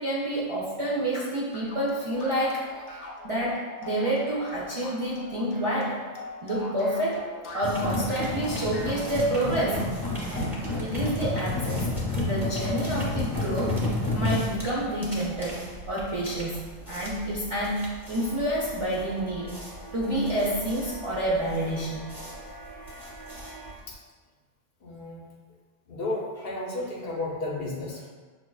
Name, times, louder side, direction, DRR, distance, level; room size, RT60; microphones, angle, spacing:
voice 1, 0.0-2.7 3.2-6.0 6.4-7.2 7.5-9.9 10.2-10.5 10.8-11.9 12.3-15.6 15.9-16.6 16.9-19.5 19.9-22.1, right 1 dB, 45° right, -8 dB, 0.4 m, -28 dB
sound 1, 1.5-10.8, left 2 dB, 85° left, 0.9 m, -42 dB
sound 2, 7.6-23.9, left 2 dB, ahead, 0.8 m, -32 dB
sound 3, 18.1-23.7, right 1 dB, 25° left, 0.5 m, -46 dB
voice 2, 24.8-25.2 25.9-28.1, left 2 dB, 60° left, -3 dB, 0.8 m, -33 dB
5.7 x 2.3 x 2.3 m, 1.4 s
omnidirectional pair, 1.2 m